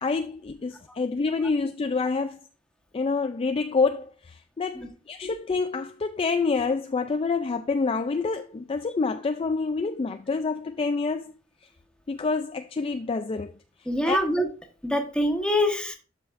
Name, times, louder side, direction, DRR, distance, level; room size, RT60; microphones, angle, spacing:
voice 1, 0.0-2.4 2.9-11.3 12.1-13.5 14.1-14.2, left 4 dB, 30° left, 0.3 m, -27 dB
voice 2, 13.8-14.5 14.8-15.9, left 1 dB, 5° left, 1.2 m, -24 dB
12.0 x 5.2 x 2.5 m
head